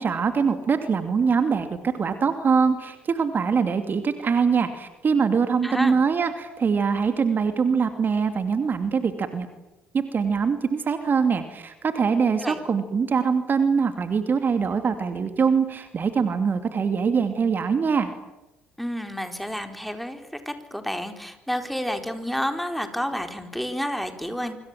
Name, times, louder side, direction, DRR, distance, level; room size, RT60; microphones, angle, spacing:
voice 1, 0.0-9.5 9.9-18.1, right 5 dB, 40° right, 8 dB, 2.6 m, -23 dB
voice 2, 5.6-6.0 12.4-12.6 18.8-24.6, equal, ahead, 6 dB, 4.3 m, -30 dB
26.0 x 25.5 x 7.6 m, 0.98 s
figure-of-eight pair, 50°, 5 cm